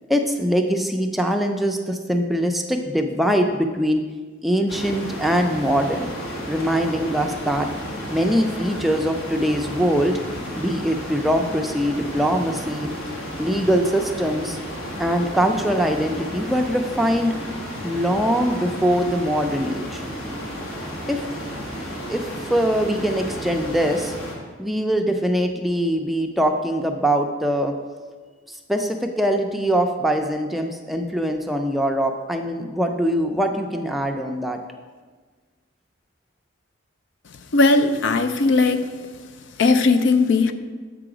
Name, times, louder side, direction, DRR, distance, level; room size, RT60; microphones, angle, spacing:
voice 1, 0.1-4.0 4.4-6.1 6.5-7.7 8.1-10.2 10.6-12.9 13.4-14.6 15.0-20.0 21.1-21.3 22.1-24.2 24.6-27.7 28.5-34.6, equal, ahead, 3 dB, 0.4 m, -22 dB
sound 1, 4.7-24.3, equal, 85° left, 1.9 m, -32 dB
voice 2, 37.5-38.9 39.6-40.5, left 3 dB, 60° left, 9 dB, 0.4 m, -17 dB
7.6 x 4.9 x 4.9 m, 1.5 s
head